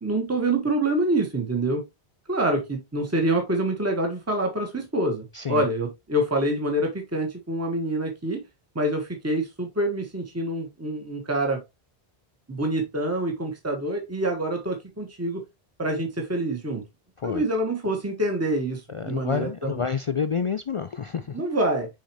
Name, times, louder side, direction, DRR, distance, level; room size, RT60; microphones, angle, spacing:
voice 1, 0.0-1.8 2.3-8.4 8.7-11.6 12.5-15.4 15.8-16.8 17.2-19.8 21.3-21.9, right 1 dB, 15° right, 1.5 m, -26 dB
voice 2, 18.9-21.4, left 6 dB, 60° left, 0.3 m, -28 dB
6.4 x 4.9 x 3.0 m
omnidirectional pair, 1.0 m